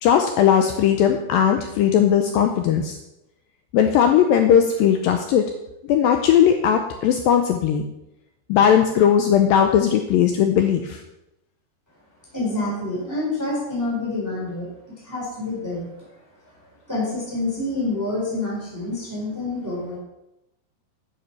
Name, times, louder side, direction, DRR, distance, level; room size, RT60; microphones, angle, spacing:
voice 1, 0.0-3.0 3.7-5.5 5.9-7.9 8.5-11.0, left 8 dB, 85° left, 6 dB, 2.1 m, -18 dB
voice 2, 12.3-14.7 15.0-16.1 16.9-20.0, left 2 dB, 5° right, -5 dB, 3.2 m, -27 dB
9.7 x 6.8 x 5.9 m, 0.90 s
omnidirectional pair, 4.8 m